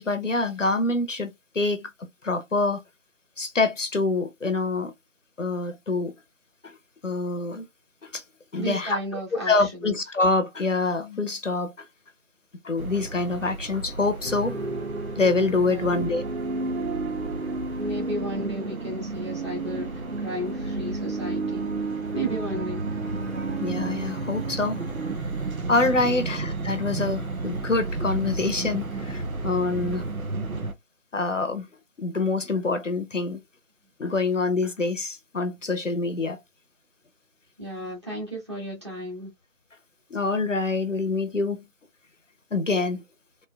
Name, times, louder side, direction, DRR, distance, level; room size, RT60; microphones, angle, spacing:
voice 1, 0.0-2.8 3.4-4.9 5.4-6.1 6.6-6.8 7.0-7.7 8.0-8.2 8.5-9.0 9.3-11.9 12.6-14.6 15.2-16.2 23.6-24.8 25.2-25.3 25.7-30.0 31.1-31.7 32.0-33.4 34.0-36.4 40.1-41.6 42.5-43.0, left 3 dB, 65° left, 0.8 m, -26 dB
voice 2, 8.5-9.9 15.7-16.0 17.8-21.7 22.1-22.8 26.0-26.2 37.6-39.3, equal, 20° right, 1.5 m, -34 dB
sound 1, 12.8-30.7, right 3 dB, 80° right, 1.0 m, -34 dB
sound 2, 14.2-25.2, right 3 dB, 50° right, 1.2 m, -32 dB
3.2 x 2.9 x 2.3 m
figure-of-eight pair, 170°, 41 cm